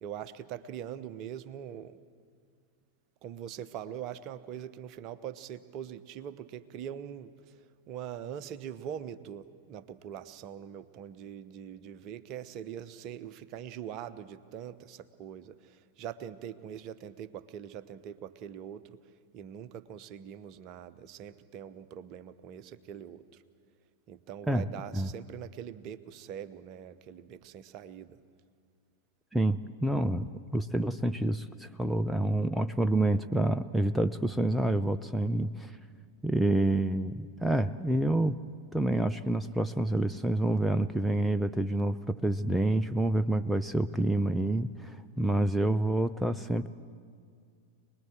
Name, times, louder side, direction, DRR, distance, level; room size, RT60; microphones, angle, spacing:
voice 1, 0.0-2.0 3.2-7.5 7.9-19.0 19.3-23.4 24.1-28.2, right 9 dB, 40° right, 13 dB, 0.9 m, -43 dB
voice 2, 29.3-35.7 36.2-38.4 38.7-46.7, right 1 dB, 5° right, 10 dB, 0.6 m, -28 dB
26.5 x 20.0 x 7.8 m, 2.2 s
figure-of-eight pair, 90°, 0 cm